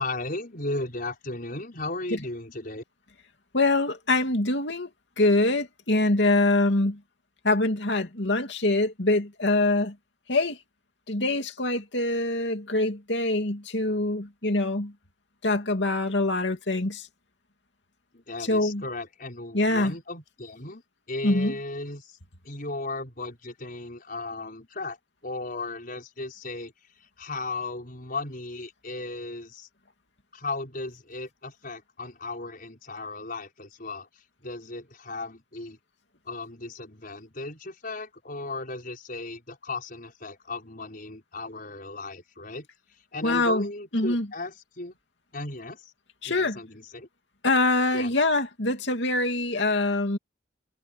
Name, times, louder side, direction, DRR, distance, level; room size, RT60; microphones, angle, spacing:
voice 1, 0.0-2.8 18.1-20.8 21.1-22.2 22.4-25.0 25.2-26.7 27.2-29.7 30.3-35.8 36.3-42.7 43.1-45.0 45.3-45.9 46.2-47.1 47.9-48.1, left 2 dB, 50° left, 5.7 m, -36 dB
voice 2, 3.5-4.9 5.2-7.0 7.4-9.9 10.3-10.6 11.1-14.9 15.4-17.0 18.5-18.8 19.5-19.9 21.2-21.5 43.2-43.7 43.9-44.3 46.2-46.6 47.4-50.2, left 2 dB, 70° left, 2.8 m, -24 dB
head